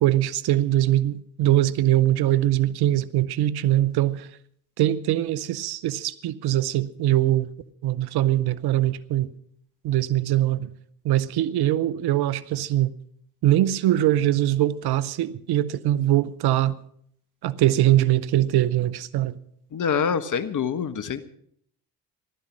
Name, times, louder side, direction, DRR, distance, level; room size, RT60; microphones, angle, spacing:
voice 1, 0.0-4.3 4.8-7.5 7.8-9.3 9.8-10.7 11.0-12.9 13.4-16.8 17.4-19.4, right 13 dB, 65° right, 0.9 m, -22 dB
voice 2, 19.7-21.2, left 7 dB, 45° left, 1.4 m, -25 dB
15.5 x 12.5 x 6.3 m
hypercardioid pair, 60°, 43 cm